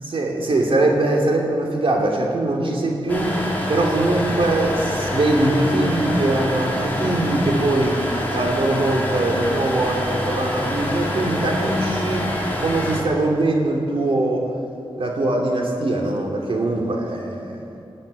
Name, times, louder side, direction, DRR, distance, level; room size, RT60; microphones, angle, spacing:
voice 1, 0.1-3.4 3.7-12.2 12.6-14.5 15.0-17.6, right 2 dB, 70° right, 0 dB, 2.9 m, -22 dB
sound 1, 3.1-13.0, left 1 dB, 20° left, 3.5 m, -26 dB
19.0 x 8.9 x 7.9 m, 2.6 s
wide cardioid pair, 90°, 10 cm